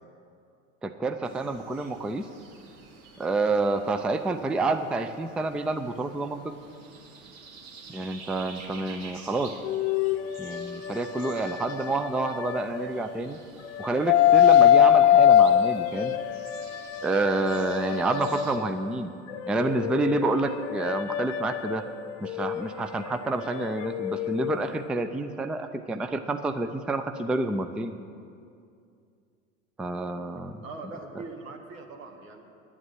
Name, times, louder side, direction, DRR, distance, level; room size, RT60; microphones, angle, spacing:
voice 1, 0.8-2.3 3.2-6.5 7.9-9.6 10.4-13.4 13.8-16.2 17.0-19.1 19.5-21.8 22.2-27.9 29.8-30.6, right 2 dB, 5° right, 8 dB, 0.4 m, -28 dB
sound 1, 1.2-18.6, right 4 dB, 60° right, 2.0 m, -49 dB
sound 2, 9.6-13.2 13.6-18.9 19.3-24.9, left 10 dB, 65° left, 0.8 m, -24 dB
voice 2, 30.6-32.4, right 3 dB, 80° right, 3 dB, 1.8 m, -41 dB
9.8 x 8.5 x 9.3 m, 2.4 s
hypercardioid pair, 90°, 39 cm